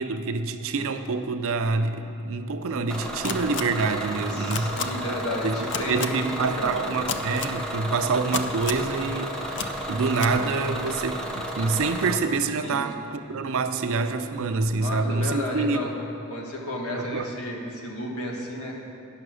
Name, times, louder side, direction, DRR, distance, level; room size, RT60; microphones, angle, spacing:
voice 1, 0.0-4.7 5.4-15.8 17.0-17.3, right 4 dB, 65° right, 8 dB, 0.5 m, -26 dB
Bus / Engine, 2.9-12.2, equal, 5° left, 0.7 m, -33 dB
sound 1, 3.2-3.6 4.5-4.8 5.7-6.1 7.1-7.5 8.3-8.8 9.6-9.7 10.1-10.3, left 7 dB, 55° left, 0.4 m, -29 dB
voice 2, 4.3-6.9 12.6-13.0 14.8-15.9 16.2-18.7, left 1 dB, 75° left, -1 dB, 1.5 m, -33 dB
9.7 x 5.8 x 6.2 m, 2.9 s
head